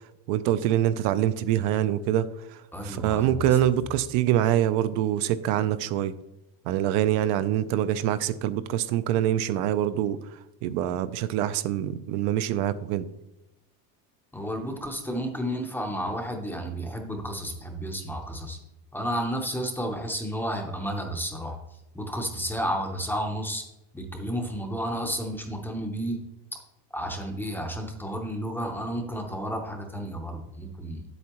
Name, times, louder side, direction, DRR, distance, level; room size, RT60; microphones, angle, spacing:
voice 1, 0.3-2.6 2.8-6.2 6.7-13.1, right 11 dB, 70° right, 13 dB, 0.6 m, -25 dB
voice 2, 2.7-3.6 14.3-18.6 18.9-23.7 23.9-26.2 26.9-31.0, equal, 5° left, 2 dB, 0.6 m, -32 dB
9.4 x 8.1 x 3.0 m, 0.92 s
cardioid pair, 170°, 42 cm